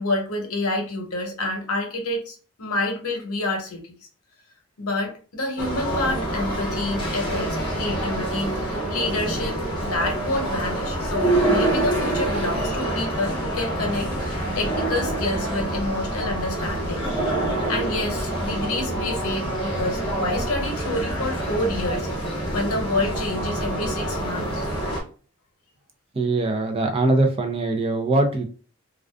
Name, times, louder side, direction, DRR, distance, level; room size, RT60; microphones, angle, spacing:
voice 1, 0.0-3.9 4.8-17.1 17.7-24.7, left 2 dB, 90° left, 2 dB, 0.9 m, -28 dB
sound 1, 5.6-25.0, right 1 dB, 20° left, 0.7 m, -26 dB
voice 2, 26.2-28.4, right 2 dB, 25° right, 4 dB, 0.3 m, -22 dB
2.4 x 2.3 x 2.2 m, 0.37 s
head